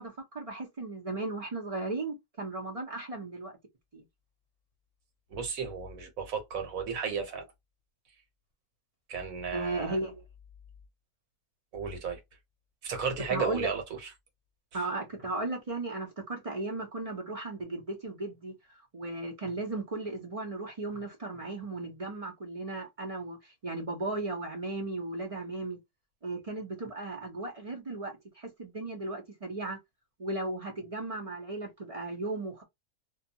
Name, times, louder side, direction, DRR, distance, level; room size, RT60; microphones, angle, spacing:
voice 1, 0.0-3.5 3.9-4.0 9.5-10.2 13.3-13.7 14.7-25.8 26.2-29.8 30.2-32.6, right 2 dB, 40° right, 0.5 m, -36 dB
voice 2, 5.3-7.5 9.1-10.0 11.7-12.2 12.8-14.1 14.7-14.8, right 6 dB, 90° right, 1.4 m, -34 dB
2.6 x 2.2 x 2.6 m
omnidirectional pair, 1.4 m